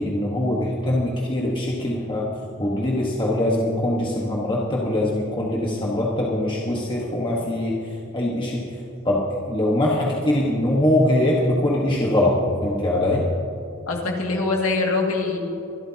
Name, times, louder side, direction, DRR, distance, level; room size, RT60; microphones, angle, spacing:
voice 1, 0.0-2.3 2.6-8.6 9.0-12.3 12.6-13.3, left 1 dB, 25° left, -4 dB, 1.4 m, -22 dB
voice 2, 13.9-15.4, left 3 dB, 85° left, 0 dB, 2.2 m, -23 dB
24.0 x 12.5 x 2.9 m, 2.9 s
head